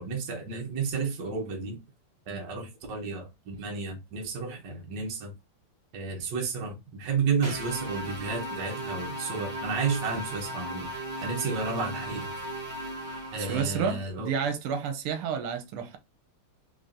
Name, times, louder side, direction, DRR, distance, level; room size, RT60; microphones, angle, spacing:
voice 1, 0.0-1.8 2.3-5.3 5.9-10.9 11.2-12.3 13.3-14.3, right 5 dB, 60° right, 1.4 m, -32 dB
sound 1, 7.4-13.9, right 1 dB, 35° right, 0.8 m, -37 dB
voice 2, 13.4-16.0, right 7 dB, 85° right, 1.6 m, -30 dB
4.1 x 3.2 x 2.6 m
omnidirectional pair, 2.4 m